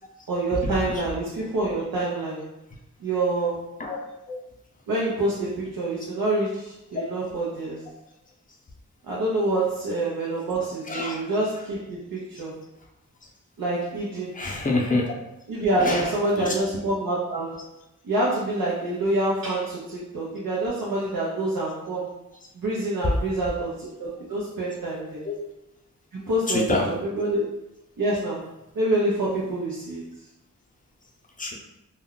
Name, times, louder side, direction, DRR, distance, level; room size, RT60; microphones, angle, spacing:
voice 1, 0.3-2.5 3.0-3.7 4.9-7.9 9.1-12.5 13.6-14.3 15.5-17.6 18.0-22.1 22.6-25.2 26.1-27.4 28.0-28.5 28.7-30.0, right 2 dB, 90° right, -6 dB, 0.7 m, -26 dB
voice 2, 10.9-11.2 14.3-15.1 15.8-16.5 25.2-25.4 26.5-26.9 31.4-31.5, left 3 dB, 25° left, -1 dB, 0.5 m, -26 dB
2.2 x 2.2 x 3.7 m, 0.90 s
wide cardioid pair, 105°, 34 cm